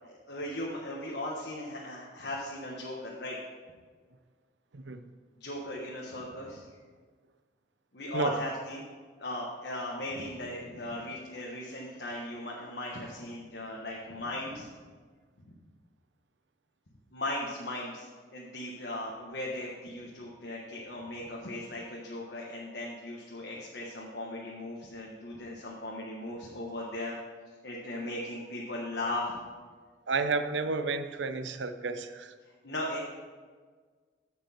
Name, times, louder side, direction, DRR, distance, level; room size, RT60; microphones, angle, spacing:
voice 1, 0.0-3.4 5.4-6.7 7.9-8.8 9.2-14.7 17.1-18.1 18.3-27.1 27.6-29.3 32.6-33.0, left 1 dB, 60° left, -3 dB, 1.3 m, -37 dB
voice 2, 4.7-5.0 8.1-8.4 30.1-32.4, right 4 dB, 80° right, 11 dB, 0.6 m, -31 dB
14.5 x 6.2 x 4.4 m, 1.5 s
head